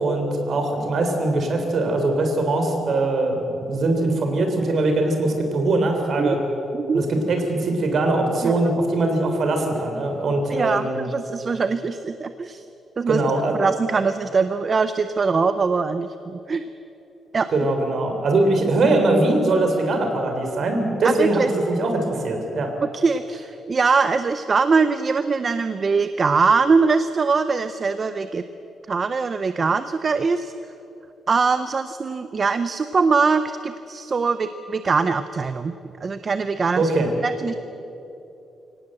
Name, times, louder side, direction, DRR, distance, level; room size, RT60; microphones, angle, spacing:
voice 1, 0.0-6.4 6.9-11.0 13.1-13.6 17.5-22.7 36.8-37.1, right 2 dB, 45° right, 4 dB, 3.6 m, -21 dB
voice 2, 10.5-12.6 13.0-13.2 13.6-16.7 17.3-17.5 21.0-21.5 22.9-28.4 28.9-30.5 31.3-35.7 36.0-36.9 37.2-37.5, right 4 dB, 30° right, 11 dB, 0.6 m, -22 dB
24.5 x 18.0 x 7.7 m, 2.9 s
cardioid pair, 170°, 0 cm